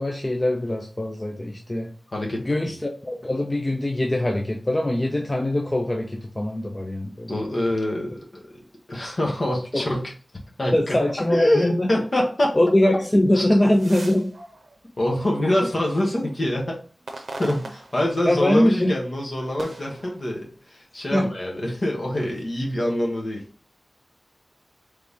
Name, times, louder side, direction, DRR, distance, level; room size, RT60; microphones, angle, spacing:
voice 1, 0.0-1.9 2.4-7.4 9.7-9.8 10.7-11.9 12.5-14.3 18.3-18.9 21.1-21.3, left 1 dB, 25° left, 1 dB, 0.6 m, -22 dB
voice 2, 2.1-2.7 7.3-8.6 8.9-10.1 10.6-11.0 11.3-12.6 13.3-13.5 15.0-16.8 17.4-23.4, left 1 dB, 50° left, -1 dB, 1.4 m, -25 dB
sound 1, 13.6-15.8 16.3-18.6 19.0-20.8 21.5-22.4, right 2 dB, 70° right, 0.6 m, -42 dB
3.9 x 3.3 x 3.6 m, 0.40 s
wide cardioid pair, 85°, 0 cm